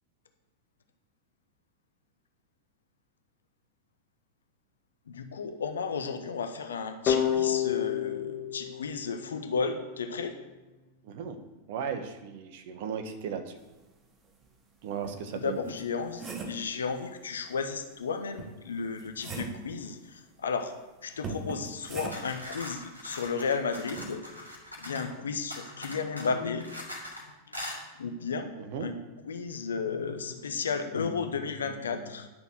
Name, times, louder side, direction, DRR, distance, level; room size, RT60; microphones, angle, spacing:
voice 1, 5.1-10.4 15.3-20.7 21.0-24.2 24.8-26.7 28.0-28.5 28.8-29.0 29.2-32.3, left 5 dB, 70° left, 8 dB, 0.9 m, -33 dB
sound 1, 7.1-9.9, left 9 dB, 35° left, 1.5 m, -29 dB
voice 2, 11.0-11.4 11.7-13.6 14.8-15.6 28.6-28.9, right 7 dB, 50° right, 7 dB, 1.2 m, -36 dB
sound 2, 14.4-14.5 15.0-16.7 18.4-19.7 21.2-22.4 24.0-24.2, right 4 dB, 25° right, 1.5 m, -40 dB
sound 3, 21.8-25.1 25.5-27.2 27.5-27.8, left 1 dB, 90° left, 2.0 m, -41 dB
10.5 x 6.7 x 6.3 m, 1.1 s
figure-of-eight pair, 90°, 0 cm